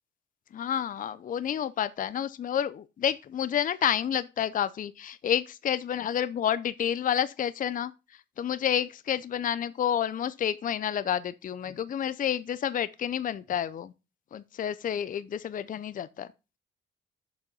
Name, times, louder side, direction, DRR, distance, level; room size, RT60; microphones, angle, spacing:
voice 1, 0.5-7.9 8.4-13.9 14.3-16.3, left 9 dB, 45° left, 0.5 m, -29 dB
7.1 x 5.3 x 5.4 m
cardioid pair, 90°, 20 cm